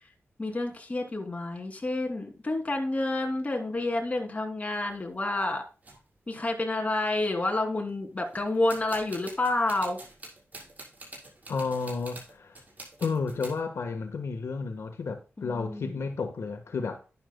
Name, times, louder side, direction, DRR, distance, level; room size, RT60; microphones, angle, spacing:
voice 1, 0.4-5.6 6.3-10.0 15.4-16.0, left 2 dB, 30° left, 2.9 m, -29 dB
sound 1, 4.7-5.0 5.8-6.0 6.7-6.8 7.0-7.4 8.3-13.6, right 2 dB, 35° right, 6.0 m, -46 dB
voice 2, 11.5-12.6 13.0-17.0, left 4 dB, 75° left, 1.4 m, -32 dB
12.0 x 10.5 x 2.3 m
wide cardioid pair, 115°, 5 cm